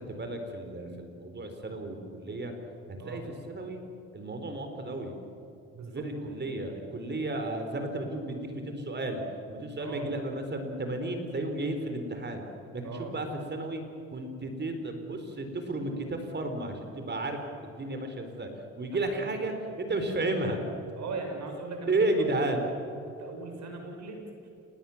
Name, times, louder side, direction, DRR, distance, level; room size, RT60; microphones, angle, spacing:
voice 1, 0.0-2.5 3.0-3.8 4.1-5.2 5.9-9.2 9.5-12.4 12.7-13.8 14.1-18.5 18.8-20.6 21.9-22.6, right 2 dB, 35° right, 6 dB, 4.4 m, -33 dB
voice 2, 5.7-6.4 9.8-10.1 12.8-13.1 19.1-19.4 21.0-22.5 23.0-24.5, right 3 dB, 65° right, 3 dB, 7.1 m, -40 dB
29.0 x 20.0 x 7.3 m, 2.8 s
cardioid pair, 90°, 30 cm